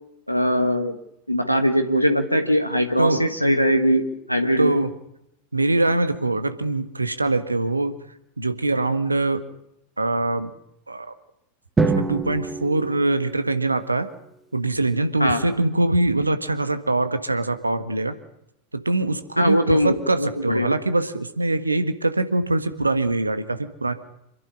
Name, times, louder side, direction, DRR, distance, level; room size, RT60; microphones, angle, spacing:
voice 1, 0.3-1.0 1.3-4.8 15.2-15.4 19.4-20.7, equal, 90° left, 7 dB, 1.4 m, -21 dB
voice 2, 4.6-5.0 5.5-7.9 8.4-9.4 10.0-10.5 10.9-11.1 11.8-14.1 14.5-18.1 18.7-23.9, right 2 dB, 80° right, 10 dB, 1.5 m, -23 dB
Drum, 11.8-13.9, right 3 dB, 15° right, 1.4 m, -25 dB
26.5 x 11.5 x 9.9 m, 0.81 s
figure-of-eight pair, 85°, 0 cm